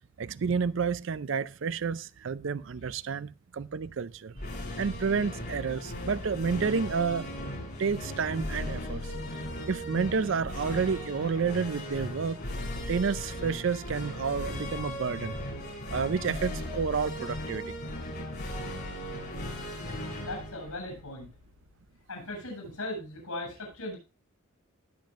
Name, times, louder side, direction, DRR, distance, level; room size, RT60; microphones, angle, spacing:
voice 1, 0.2-4.3 4.8-7.3 7.8-9.1 9.7-12.4 12.9-15.3 15.9-17.7 19.9-20.1, right 5 dB, 55° right, 0.4 m, -30 dB
sound 1, 4.3-21.8, left 1 dB, 45° left, 7.5 m, -37 dB
voice 2, 20.2-21.3 22.1-24.0, left 2 dB, 85° left, 7.6 m, -38 dB
19.5 x 7.5 x 2.5 m
head